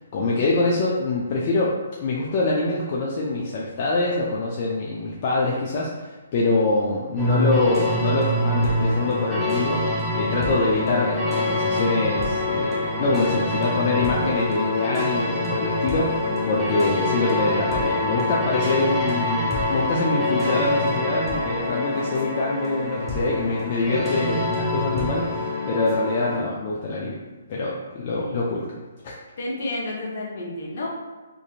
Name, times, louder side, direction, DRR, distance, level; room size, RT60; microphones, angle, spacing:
voice 1, 0.0-9.9 10.1-27.2 27.5-28.7 29.0-29.1, left 3 dB, 40° left, -4 dB, 0.4 m, -25 dB
sound 1, 7.2-26.4, left 1 dB, ahead, 0.7 m, -25 dB
voice 2, 29.4-30.9, left 2 dB, 60° left, -3 dB, 0.9 m, -31 dB
2.7 x 2.6 x 2.4 m, 1.3 s
hypercardioid pair, 145°, 0 cm